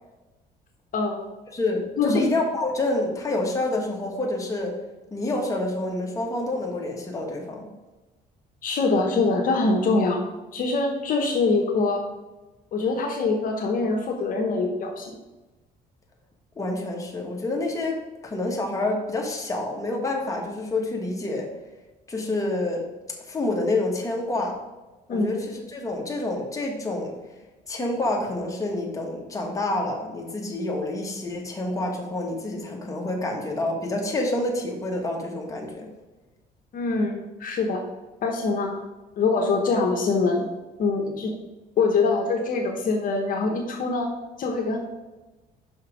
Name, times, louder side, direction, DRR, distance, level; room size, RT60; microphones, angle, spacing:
voice 1, 1.5-4.7 5.1-7.7 16.5-21.5 22.1-22.9 23.2-24.6 25.1-27.1 27.7-35.9, left 2 dB, 20° left, 0 dB, 1.7 m, -28 dB
voice 2, 8.6-10.2 10.5-12.1 12.7-15.2 25.1-25.3 36.7-37.8 38.2-38.8 39.2-40.4 40.8-41.3 41.8-44.1 44.4-44.8, left 3 dB, 55° left, 2 dB, 1.1 m, -24 dB
5.7 x 5.7 x 5.2 m, 1.1 s
cardioid pair, 110°, 17 cm